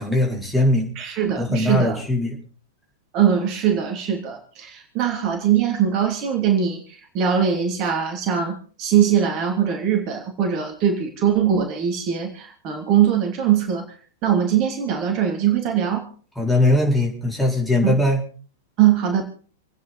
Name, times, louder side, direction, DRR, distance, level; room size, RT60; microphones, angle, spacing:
voice 1, 0.0-0.9 1.4-2.4 16.4-18.2, left 1 dB, 5° left, -2 dB, 4.3 m, -20 dB
voice 2, 0.9-2.0 3.1-13.8 14.2-16.1 17.8-18.0 18.8-19.2, right 8 dB, 35° right, 2 dB, 2.9 m, -21 dB
28.0 x 9.5 x 4.2 m, 0.41 s
figure-of-eight pair, 100°, 0 cm